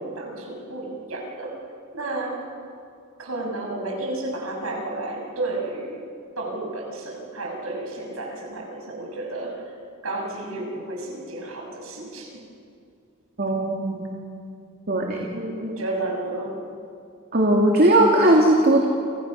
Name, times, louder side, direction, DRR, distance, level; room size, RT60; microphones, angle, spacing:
voice 1, 0.0-1.5 1.9-2.4 3.2-6.0 6.4-9.7 10.0-12.4 15.3-16.6, right 2 dB, 85° right, 0 dB, 6.6 m, -32 dB
voice 2, 13.4-14.1 14.9-15.3 17.3-18.9, right 1 dB, 45° right, 0 dB, 2.6 m, -18 dB
30.0 x 27.5 x 6.5 m, 2.4 s
head